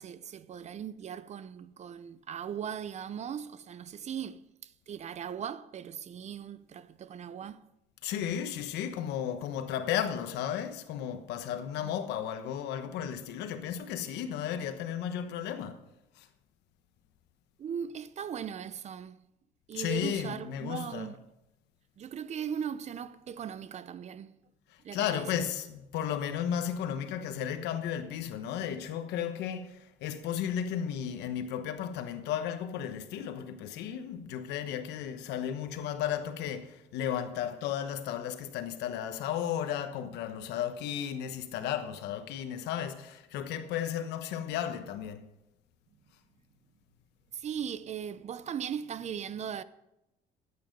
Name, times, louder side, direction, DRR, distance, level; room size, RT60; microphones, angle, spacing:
voice 1, 0.0-7.6 11.8-11.9 17.6-19.2 19.7-21.2 22.0-24.4 24.8-25.2 47.3-49.6, right 8 dB, 40° right, 0.6 m, -39 dB
voice 2, 8.0-15.8 16.2-16.3 19.7-21.2 24.9-45.2, left 9 dB, 85° left, 1.1 m, -34 dB
13.0 x 8.8 x 5.3 m
cardioid pair, 110°, 17 cm